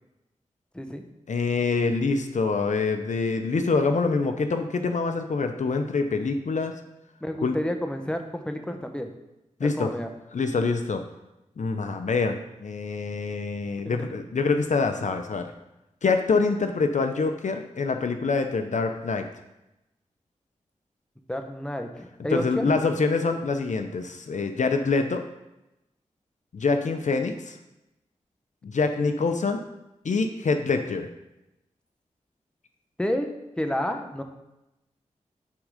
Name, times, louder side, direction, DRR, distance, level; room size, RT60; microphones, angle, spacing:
voice 1, 0.7-1.1 7.2-9.1 9.6-10.1 13.8-14.1 21.3-22.7 33.0-33.3 33.6-34.2, equal, 5° left, 5 dB, 1.0 m, -30 dB
voice 2, 1.3-6.7 7.4-7.6 9.6-9.9 10.3-11.0 11.6-15.5 16.0-19.3 22.3-25.2 26.5-27.6 28.6-29.6 30.0-31.1, left 4 dB, 65° left, 6 dB, 0.6 m, -25 dB
9.5 x 3.7 x 4.9 m, 0.93 s
cardioid pair, 45°, 13 cm